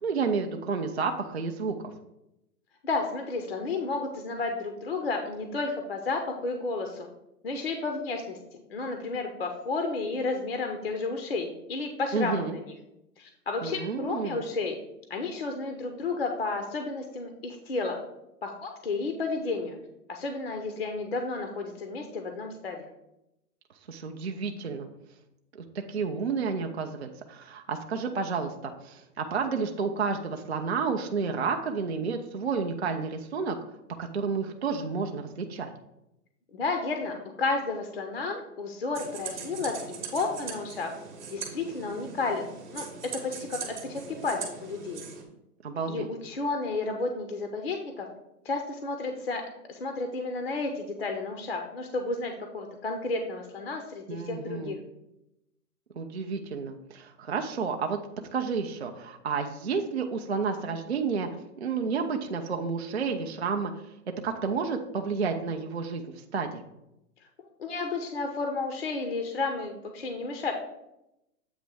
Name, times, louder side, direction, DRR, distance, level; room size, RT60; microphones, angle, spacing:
voice 1, 0.0-1.9 12.1-12.6 13.6-14.4 23.9-24.9 25.7-33.6 34.0-35.7 45.6-46.1 54.1-54.8 56.0-58.0 58.3-61.3 61.6-63.7 64.2-66.6, right 5 dB, 45° right, 4 dB, 0.4 m, -31 dB
voice 2, 2.8-7.1 7.4-12.7 13.2-14.8 15.1-18.0 18.4-19.8 20.1-22.9 36.5-40.9 41.3-42.5 42.7-45.0 45.9-48.1 48.4-54.8 67.6-70.5, left 3 dB, 40° left, 4 dB, 0.6 m, -32 dB
sound 1, 38.9-45.2, right 6 dB, 30° right, 1.0 m, -40 dB
8.0 x 3.1 x 6.1 m, 0.87 s
hypercardioid pair, 175°, 47 cm